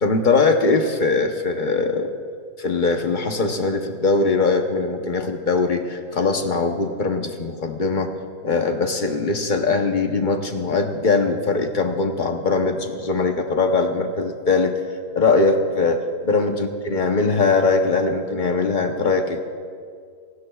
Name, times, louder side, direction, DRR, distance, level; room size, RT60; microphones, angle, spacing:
voice 1, 0.0-2.1 2.6-8.1 8.4-14.7 15.2-19.4, left 3 dB, 45° left, 5 dB, 0.6 m, -21 dB
28.5 x 16.5 x 2.3 m, 2.2 s
omnidirectional pair, 2.0 m